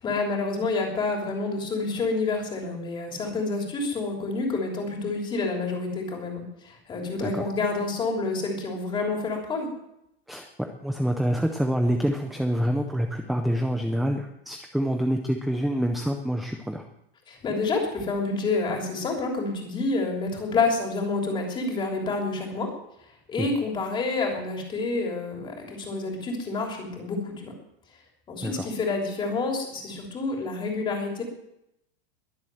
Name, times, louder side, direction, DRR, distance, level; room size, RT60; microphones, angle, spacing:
voice 1, 0.0-9.7 17.3-22.7 23.3-27.5 28.3-31.2, left 3 dB, 15° left, 1 dB, 3.3 m, -28 dB
voice 2, 10.8-16.9 23.4-23.5 28.4-28.7, equal, ahead, 4 dB, 0.5 m, -26 dB
22.0 x 7.6 x 7.8 m, 0.81 s
supercardioid pair, 175°, 30 cm